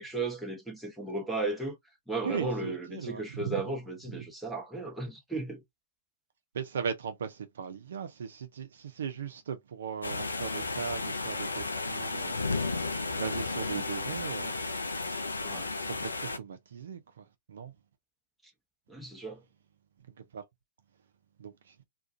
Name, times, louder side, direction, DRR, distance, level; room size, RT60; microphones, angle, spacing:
voice 1, 0.0-1.8 2.1-5.6 13.7-13.8 15.4-15.7 18.9-19.4, right 2 dB, ahead, 0.8 m, -35 dB
voice 2, 2.2-3.8 4.1-4.3 6.5-12.7 13.2-14.5 15.8-17.7 20.3-20.4 21.4-21.7, right 7 dB, 60° right, 0.5 m, -38 dB
sound 1, 10.0-16.4, left 3 dB, 80° left, 0.3 m, -33 dB
2.4 x 2.2 x 2.6 m
figure-of-eight pair, 110°, 0 cm